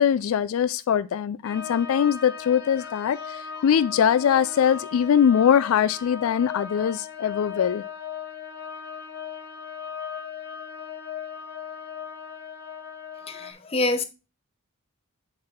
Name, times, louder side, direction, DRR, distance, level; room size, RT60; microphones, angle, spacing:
voice 1, 0.0-7.8, left 8 dB, 75° left, 0.3 m, -22 dB
sound 1, 1.4-13.5, left 7 dB, 50° left, 1.3 m, -37 dB
voice 2, 13.3-14.0, left 2 dB, 25° left, 0.8 m, -26 dB
7.5 x 4.0 x 4.3 m
head